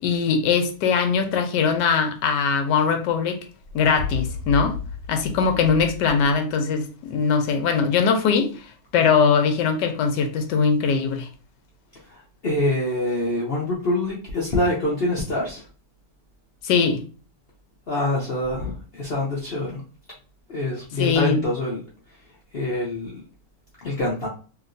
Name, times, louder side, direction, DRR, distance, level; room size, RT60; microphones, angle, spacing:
voice 1, 0.0-3.4 3.7-4.8 5.1-11.3 16.6-17.0 21.0-21.5, left 5 dB, 80° left, 1.2 m, -21 dB
sound 1, 3.6-6.4, left 6 dB, 70° right, 1.4 m, -32 dB
voice 2, 12.0-15.7 17.9-19.8 20.5-21.8 22.5-23.2 23.8-24.3, left 1 dB, 65° left, 0.6 m, -25 dB
2.9 x 2.9 x 2.5 m
omnidirectional pair, 1.9 m